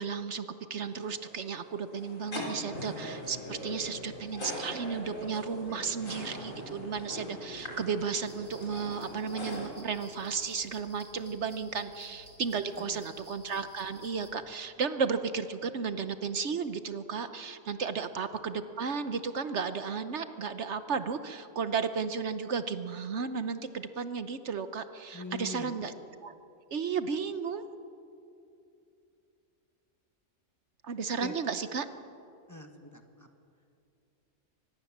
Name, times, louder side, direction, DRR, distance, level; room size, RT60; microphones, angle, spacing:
voice 1, 0.0-25.9 26.2-26.3 26.7-27.6 30.8-31.9, right 5 dB, 65° right, 10 dB, 1.2 m, -34 dB
sound 1, 0.8-9.7, left 1 dB, 90° left, 4.1 m, -41 dB
sound 2, 3.2-14.3, left 1 dB, 65° left, 2.1 m, -58 dB
voice 2, 3.8-4.2 12.7-13.3 18.3-18.4 25.1-25.7 31.2-31.3 32.5-33.3, left 2 dB, 15° left, 5 dB, 1.4 m, -44 dB
sound 3, 8.2-14.3, equal, 30° right, 3.1 m, -55 dB
24.0 x 20.0 x 7.3 m, 2.6 s
omnidirectional pair, 1.3 m